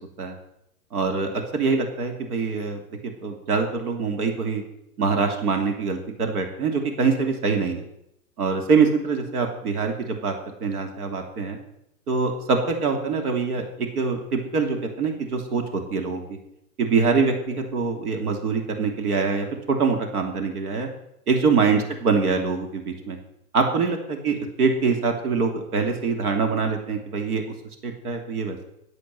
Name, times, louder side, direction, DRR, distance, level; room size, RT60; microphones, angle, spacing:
voice 1, 0.9-2.8 3.2-4.6 5.0-7.8 8.4-10.3 10.6-11.6 12.1-16.4 16.8-20.9 21.3-23.2 23.5-27.4 27.8-28.7, right 4 dB, 75° right, 4 dB, 3.0 m, -24 dB
12.5 x 8.1 x 7.6 m, 0.81 s
hypercardioid pair, 150°, 46 cm